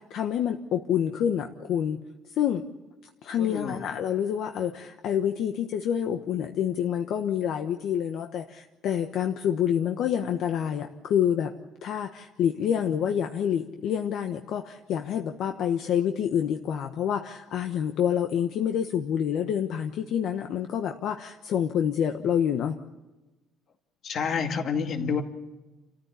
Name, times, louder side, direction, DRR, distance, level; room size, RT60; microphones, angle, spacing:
voice 1, 0.0-2.0 2.3-2.6 3.2-11.5 11.8-22.8, left 9 dB, 60° left, 5 dB, 1.2 m, -27 dB
voice 2, 3.4-3.8 24.0-25.2, left 6 dB, 40° left, 5 dB, 2.3 m, -29 dB
29.0 x 14.5 x 8.5 m, 1.1 s
cardioid pair, 150°, 0 cm